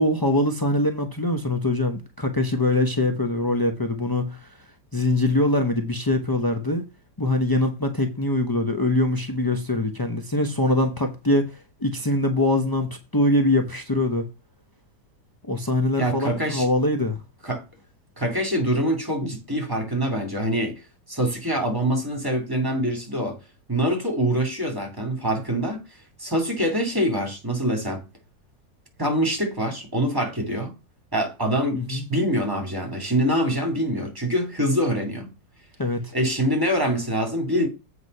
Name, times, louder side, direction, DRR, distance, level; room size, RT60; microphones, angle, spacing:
voice 1, 0.0-4.5 4.9-6.8 7.2-11.4 11.8-14.2 15.5-17.2 31.8-32.0 35.8-36.1, left 1 dB, 25° left, 0.4 m, -23 dB
voice 2, 16.0-16.7 17.4-17.7 18.2-20.8 21.1-23.4 23.7-25.8 26.2-28.0 29.0-30.8 31.1-35.3 36.1-37.7, equal, 10° right, 2.6 m, -24 dB
8.1 x 5.1 x 5.4 m
omnidirectional pair, 2.0 m